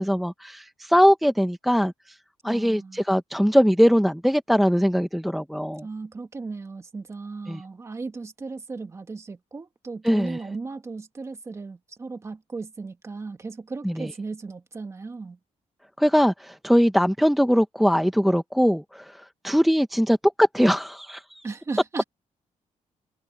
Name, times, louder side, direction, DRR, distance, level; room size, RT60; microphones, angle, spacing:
voice 1, 0.0-2.2 2.4-5.8 7.5-7.6 10.0-10.4 13.8-14.1 16.0-21.4, equal, ahead, 0.7 m, -21 dB
voice 2, 2.4-3.0 5.8-15.4 21.4-22.0, right 4 dB, 20° right, 1.6 m, -36 dB
wide cardioid pair, 180°, 13 cm